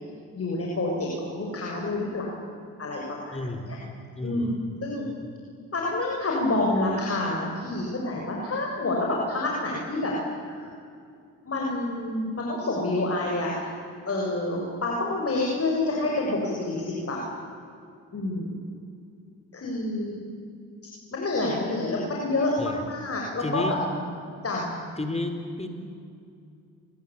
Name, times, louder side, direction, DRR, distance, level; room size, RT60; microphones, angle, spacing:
voice 1, 0.3-2.3 2.8-3.8 4.2-4.5 4.8-5.0 5.7-10.1 10.4-10.7 11.5-13.7 14.1-17.2 18.1-18.6 19.5-20.1 21.1-23.8 24.4-24.7, left 2 dB, 40° left, -2 dB, 7.0 m, -28 dB
voice 2, 3.3-3.7 4.2-4.7 22.6-22.9 23.4-23.8 25.0-25.7, left 2 dB, 20° left, 7 dB, 4.3 m, -31 dB
29.5 x 22.5 x 8.8 m, 2.4 s
supercardioid pair, 55°, 36 cm